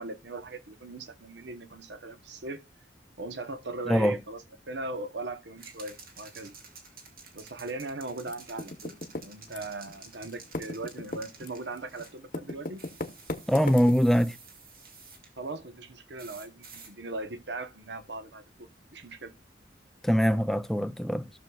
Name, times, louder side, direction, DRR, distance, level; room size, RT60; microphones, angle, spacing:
voice 1, 0.0-2.6 3.2-4.4 4.7-6.6 7.3-12.9 15.4-19.3, right 2 dB, 70° right, 1.0 m, -39 dB
voice 2, 3.9-4.2 13.5-14.4 20.0-21.3, equal, ahead, 0.4 m, -23 dB
sound 1, 5.6-12.2 12.8-15.3 16.2-16.9, right 4 dB, 55° right, 2.1 m, -51 dB
Typing, 8.3-10.0 10.2-14.3, left 2 dB, 50° left, 1.0 m, -37 dB
16.0 x 6.3 x 2.3 m
head